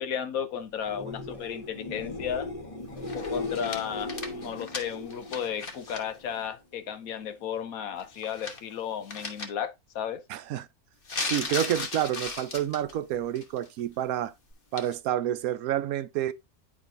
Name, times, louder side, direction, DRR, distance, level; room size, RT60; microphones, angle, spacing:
voice 1, 0.0-2.5 3.1-10.2, left 8 dB, 70° left, 1.2 m, -34 dB
sound 1, 0.8-6.5 6.9-7.4 14.5-14.6, left 2 dB, 25° left, 1.4 m, -38 dB
sound 2, 3.0-6.0 6.4-6.5 8.0-8.7 9.1-9.4 11.0-13.0 13.3-13.7 14.8-14.9, left 4 dB, 40° left, 1.3 m, -36 dB
voice 2, 10.3-10.7 11.2-14.3 14.7-16.3, right 11 dB, 75° right, 1.0 m, -29 dB
10.0 x 5.0 x 2.6 m
omnidirectional pair, 1.6 m